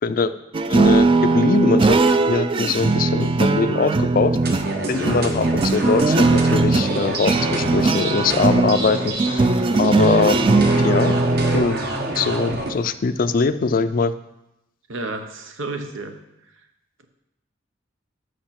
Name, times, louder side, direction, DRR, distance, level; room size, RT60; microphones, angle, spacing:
voice 1, 0.0-0.3 0.7-4.3 4.9-9.4 9.8-10.4 10.8-11.2 11.5-11.8 12.2-14.1, left 4 dB, 45° left, 12 dB, 0.4 m, -22 dB
sound 1, 0.5-11.7, right 3 dB, 25° right, 0.3 m, -19 dB
sound 2, 4.4-12.7, right 1 dB, 55° right, 1.2 m, -27 dB
voice 2, 14.9-16.2, right 2 dB, 85° right, 6 dB, 0.9 m, -31 dB
6.6 x 6.5 x 5.8 m, 0.88 s
head